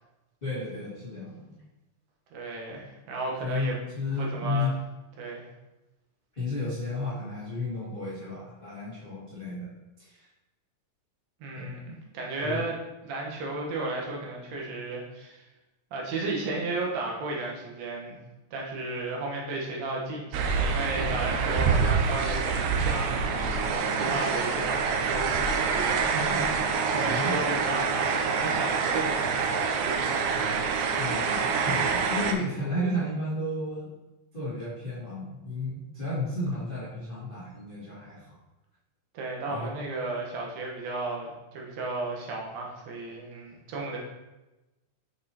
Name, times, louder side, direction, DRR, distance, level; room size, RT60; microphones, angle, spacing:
voice 1, 0.4-1.6 3.4-4.7 6.3-9.7 10.0-10.2 11.5-11.8 12.4-12.6 27.0-27.3 30.9-33.9 34.3-38.3 39.4-39.7, left 2 dB, 50° left, -10 dB, 0.6 m, -33 dB
voice 2, 2.3-3.8 4.2-4.8 5.2-5.4 11.4-15.4 15.9-18.2 18.5-30.3 39.1-44.0, right 2 dB, 65° right, -2 dB, 2.1 m, -34 dB
sound 1, 20.3-32.3, right 5 dB, 80° right, 2.1 m, -26 dB
6.1 x 5.5 x 2.9 m, 1.0 s
omnidirectional pair, 3.9 m